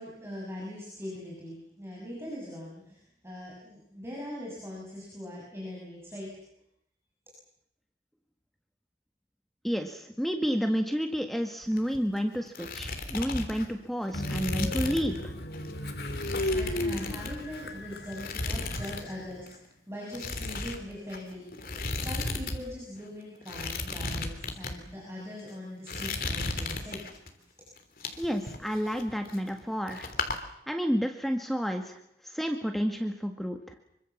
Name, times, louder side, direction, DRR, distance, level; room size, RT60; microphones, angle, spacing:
voice 1, 0.0-6.4 16.3-27.2, left 1 dB, 15° right, -4 dB, 7.2 m, -41 dB
voice 2, 9.6-15.3 28.2-30.1 30.7-33.6, equal, ahead, 5 dB, 1.8 m, -30 dB
sound 1, 11.6-12.2 12.4-15.2 15.5-15.7 16.1-17.7 18.1-19.1 19.3-19.6 20.1-22.6 22.8-22.9 23.4-24.7 25.3-25.5 25.9-27.3 27.8-29.6 29.9-30.4, left 3 dB, 55° left, 3.3 m, -35 dB
Train, 14.1-19.4, left 1 dB, 70° left, 2.8 m, -35 dB
26.0 x 24.5 x 7.3 m, 0.75 s
head